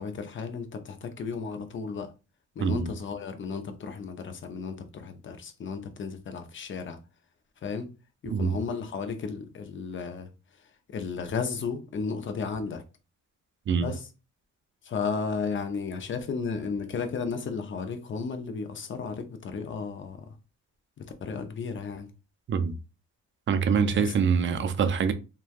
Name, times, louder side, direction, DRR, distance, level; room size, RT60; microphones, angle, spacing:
voice 1, 0.0-2.1 2.6-7.0 7.6-7.9 8.2-10.3 10.9-12.8 13.8-14.1 14.8-20.4 21.0-22.1 23.9-24.1, left 5 dB, 40° left, 0.6 m, -34 dB
voice 2, 23.5-25.1, right 6 dB, 40° right, 0.4 m, -24 dB
3.1 x 2.2 x 2.4 m
cardioid pair, 90°, 30 cm